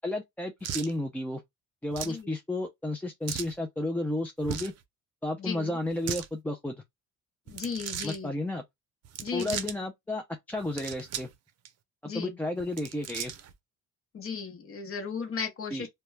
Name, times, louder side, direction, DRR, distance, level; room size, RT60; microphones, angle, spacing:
voice 1, 0.0-1.4 1.8-4.7 5.2-6.7 8.0-8.6 9.3-11.3 12.0-13.3 15.7-15.9, left 1 dB, 5° left, 0.4 m, -32 dB
sound 1, 0.6-0.9 1.9-2.2 3.3-3.5 4.4-4.8 5.9-6.3 7.5-8.2 9.0-9.8 10.6-11.3 11.6-11.7 12.6-13.5, right 9 dB, 60° right, 0.5 m, -37 dB
voice 2, 5.4-5.7 7.5-8.3 9.2-9.8 12.1-12.3 14.1-15.9, left 5 dB, 45° left, 0.9 m, -36 dB
2.2 x 2.1 x 3.0 m
cardioid pair, 90°, 30 cm